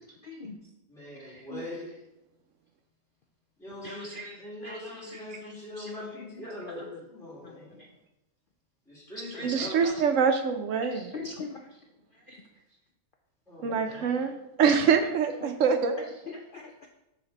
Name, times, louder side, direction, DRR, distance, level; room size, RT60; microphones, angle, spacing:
voice 1, 0.2-0.5 1.2-1.6 3.8-4.4 4.6-6.1 6.6-6.9 9.3-10.0 11.1-11.5 12.3-12.4 13.7-13.8 15.0-15.1 15.4-15.5 16.0-16.6, left 2 dB, 70° left, 2 dB, 0.5 m, -42 dB
voice 2, 0.9-1.9 3.6-7.8 8.9-9.8 13.5-14.1, left 1 dB, ahead, -8 dB, 2.6 m, -42 dB
voice 3, 9.4-11.1 13.6-14.3 14.6-16.1, right 6 dB, 70° right, 7 dB, 0.9 m, -25 dB
9.9 x 3.3 x 4.0 m, 0.92 s
omnidirectional pair, 1.5 m